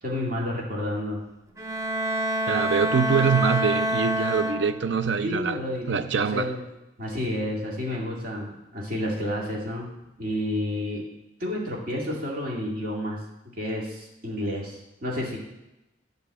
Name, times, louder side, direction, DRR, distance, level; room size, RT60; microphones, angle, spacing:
voice 1, 0.0-1.2 5.2-6.6 7.0-9.9 10.2-11.1 11.4-13.2 13.6-15.4, left 1 dB, 55° right, -3 dB, 2.1 m, -30 dB
Bowed string instrument, 1.6-5.1, equal, 20° right, 0.5 m, -27 dB
voice 2, 2.5-5.6 5.9-6.5, right 6 dB, 85° right, 11 dB, 0.5 m, -24 dB
8.9 x 4.0 x 7.2 m, 0.96 s
head